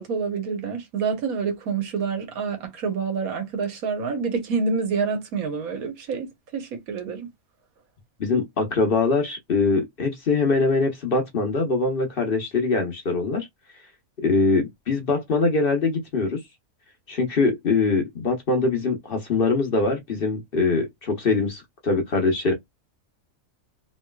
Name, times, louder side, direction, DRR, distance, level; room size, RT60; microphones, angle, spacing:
voice 1, 0.0-7.3, right 5 dB, 80° right, 1.4 m, -27 dB
voice 2, 8.2-13.5 14.2-16.4 17.1-22.5, left 3 dB, 45° left, 1.0 m, -23 dB
3.1 x 3.0 x 2.3 m
omnidirectional pair, 1.5 m